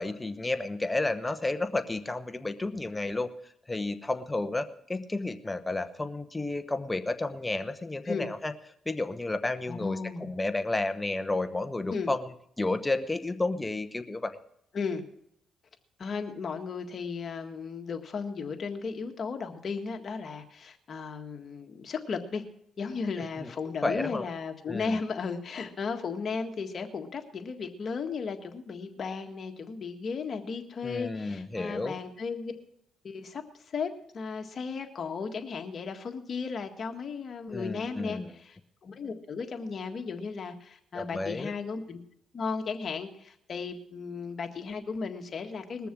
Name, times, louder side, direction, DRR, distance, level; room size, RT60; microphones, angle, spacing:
voice 1, 0.0-3.3 3.7-8.5 8.9-14.4 23.4-23.5 23.8-24.3 24.7-25.0 30.8-32.0 37.5-38.3 40.9-41.5, left 2 dB, 15° left, 10 dB, 1.0 m, -31 dB
voice 2, 9.7-10.3 11.9-12.1 14.7-15.0 16.0-22.4 22.8-32.5 33.0-42.0 42.3-45.9, left 5 dB, 50° left, 5 dB, 1.7 m, -35 dB
20.5 x 6.9 x 6.1 m, 0.73 s
cardioid pair, 90°, 0 cm